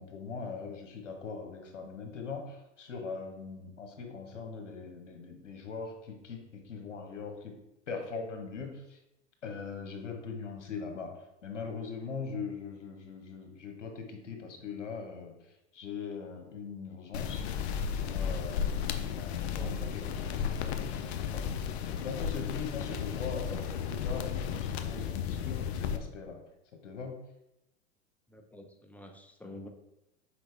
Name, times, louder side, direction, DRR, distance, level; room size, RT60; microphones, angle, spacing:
voice 1, 0.0-7.5 7.9-9.0 9.4-15.3 15.7-17.4 17.9-21.7 22.0-26.4 26.8-27.1, left 5 dB, 80° left, 3 dB, 1.4 m, -41 dB
sound 1, 17.1-26.0, left 7 dB, 60° left, 0.7 m, -34 dB
voice 2, 19.3-20.2 28.3-29.7, left 1 dB, 5° left, 4 dB, 0.7 m, -49 dB
5.9 x 4.8 x 3.4 m, 0.86 s
hypercardioid pair, 100°, 36 cm